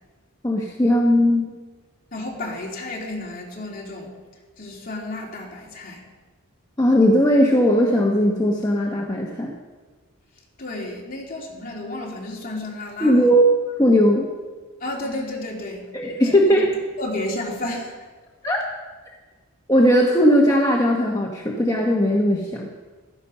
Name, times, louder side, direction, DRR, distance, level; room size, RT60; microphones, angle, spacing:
voice 1, 0.4-1.5 6.8-9.5 13.0-13.4 13.8-14.3 15.9-16.7 18.4-18.6 19.7-22.7, equal, 15° left, -2 dB, 1.3 m, -18 dB
voice 2, 2.1-4.1 4.6-6.0 10.6-13.3 14.8-15.8 16.4-16.6 17.0-17.9, left 1 dB, 40° left, -2 dB, 3.4 m, -32 dB
15.5 x 13.5 x 5.7 m, 1.3 s
head